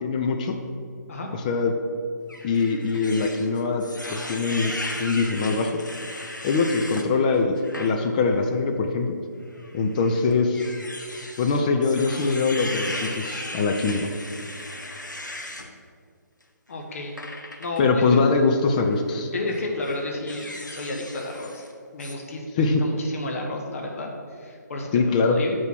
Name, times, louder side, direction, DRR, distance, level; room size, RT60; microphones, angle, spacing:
voice 1, 0.0-0.6 1.4-1.7 2.4-3.8 4.1-4.7 5.0-5.8 6.4-9.1 9.7-10.7 11.4-14.1 17.8-19.3 22.6-22.8 24.9-25.4, left 4 dB, 25° left, 3 dB, 0.5 m, -22 dB
sound 1, 2.3-7.1 7.6-7.9 8.4-8.5 9.5-15.7 17.2-17.8 18.8-19.0 19.5-21.7 22.0-22.1, left 1 dB, 85° left, 1.1 m, -37 dB
voice 2, 16.7-17.2 17.6-18.2 19.3-21.7 21.9-25.6, left 2 dB, 50° left, 1 dB, 1.1 m, -32 dB
8.1 x 4.7 x 5.9 m, 2.2 s
figure-of-eight pair, 140°, 10 cm